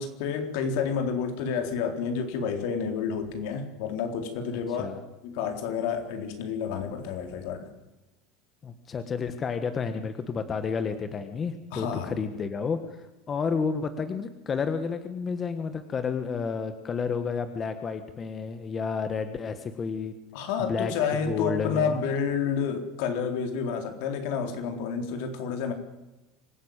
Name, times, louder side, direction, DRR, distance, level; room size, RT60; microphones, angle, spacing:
voice 1, 0.0-7.7 11.7-12.1 20.3-25.7, left 6 dB, 70° left, 6 dB, 4.0 m, -30 dB
voice 2, 4.7-5.0 8.6-20.1 20.7-20.9 21.3-22.0, left 5 dB, 25° left, 9 dB, 1.5 m, -31 dB
25.5 x 16.0 x 9.0 m, 1.0 s
supercardioid pair, 150°, 0 cm